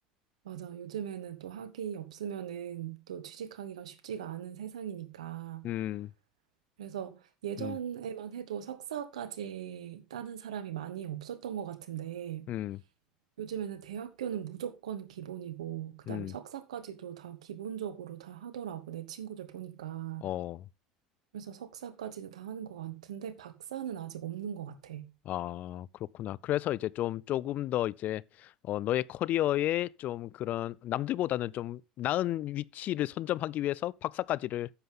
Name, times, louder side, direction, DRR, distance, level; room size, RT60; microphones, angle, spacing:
voice 1, 0.4-5.7 6.8-12.5 13.4-20.3 21.3-25.1, right 9 dB, 85° right, 1.2 m, -39 dB
voice 2, 5.6-6.1 7.6-7.8 12.5-12.8 16.1-16.3 20.2-20.6 25.3-25.9 26.1-34.7, left 13 dB, 50° left, 0.4 m, -32 dB
9.7 x 7.8 x 3.7 m
hypercardioid pair, 75°, 3 cm